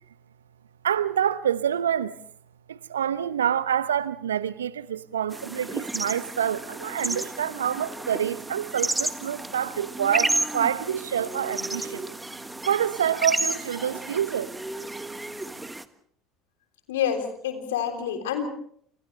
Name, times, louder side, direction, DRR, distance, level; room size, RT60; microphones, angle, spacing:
voice 1, 0.8-2.1 2.7-12.0 12.7-14.5, right 9 dB, 80° right, 0.8 m, -27 dB
sound 1, 5.3-15.8, right 2 dB, 10° right, 1.5 m, -32 dB
voice 2, 16.9-18.5, left 8 dB, 75° left, 3.6 m, -28 dB
29.5 x 28.5 x 3.3 m
figure-of-eight pair, 65°, 0 cm